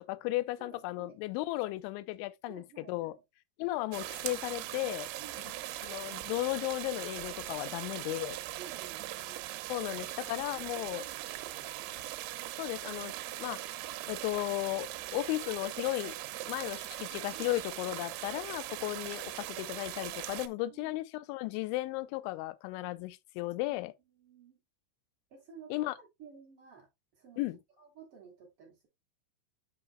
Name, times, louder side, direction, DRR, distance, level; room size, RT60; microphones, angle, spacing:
voice 1, 0.0-3.2 3.6-5.1 5.8-8.4 9.7-11.1 12.6-13.1 13.4-13.7 14.1-16.2 16.5-23.9 25.7-25.9 27.4-27.6, left 18 dB, 80° left, 2.9 m, -35 dB
voice 2, 0.6-1.2 2.5-3.2 5.2-5.8 8.6-9.5 9.8-12.0 17.3-17.5 18.3-18.4 20.7-21.0 23.7-23.8 24.1-24.6 25.3-26.9 27.1-27.4 27.8-28.9, right 7 dB, 35° right, 3.3 m, -54 dB
sound 1, 3.9-20.5, right 15 dB, 80° right, 2.8 m, -40 dB
8.8 x 5.7 x 2.2 m
omnidirectional pair, 5.5 m